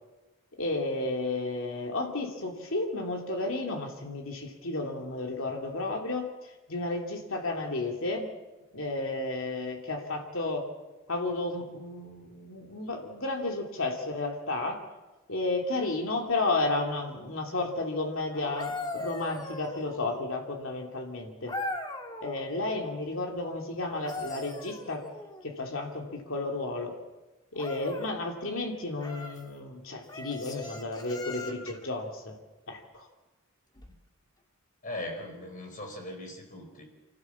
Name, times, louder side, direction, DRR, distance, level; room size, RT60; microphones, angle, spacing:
voice 1, 0.6-8.3 8.7-10.6 11.1-14.8 15.3-21.5 22.2-25.0 25.4-26.9 27.5-32.4 32.7-33.1, left 2 dB, 60° left, 1 dB, 2.9 m, -32 dB
sound 1, 18.3-20.3 21.5-22.4 23.8-25.5 27.6-28.2 29.0-29.4 30.1-31.9 33.8-34.0, left 2 dB, 20° left, 1.7 m, -39 dB
voice 2, 34.8-36.8, left 1 dB, 35° left, 3 dB, 4.7 m, -39 dB
25.5 x 15.5 x 7.2 m, 1.1 s
head